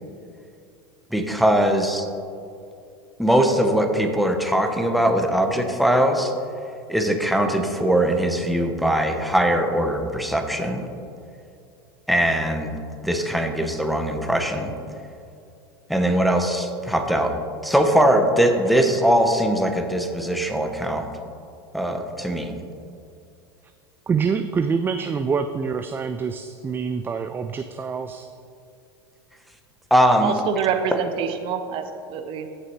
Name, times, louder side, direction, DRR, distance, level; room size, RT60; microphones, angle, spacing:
voice 1, 1.1-2.0 3.2-6.3 6.9-10.9 12.1-12.7 13.0-14.7 15.9-17.3 17.6-21.1 21.7-22.5 29.9-30.4, right 1 dB, ahead, 4 dB, 0.9 m, -21 dB
voice 2, 24.1-28.3, right 5 dB, 15° right, 8 dB, 0.3 m, -26 dB
voice 3, 30.2-32.5, right 7 dB, 45° right, 8 dB, 0.7 m, -25 dB
15.0 x 5.9 x 3.1 m, 2.5 s
hypercardioid pair, 90°, 13 cm